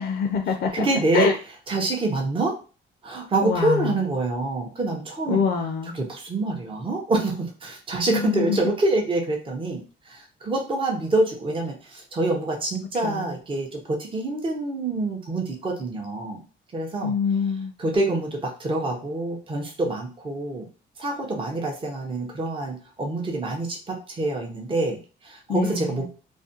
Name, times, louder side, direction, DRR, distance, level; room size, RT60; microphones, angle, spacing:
voice 1, 0.0-0.9 1.1-1.4 3.4-3.9 5.3-6.0 8.1-8.6 13.0-13.3 17.0-17.7 25.5-26.1, left 6 dB, 55° left, 6 dB, 0.4 m, -25 dB
voice 2, 0.7-1.3 1.7-2.5 3.0-5.4 5.9-9.8 10.1-16.4 16.7-17.1 17.8-20.7 21.0-26.1, right 2 dB, 25° right, 1 dB, 0.6 m, -26 dB
2.4 x 2.1 x 2.7 m, 0.35 s
cardioid pair, 90°, 20 cm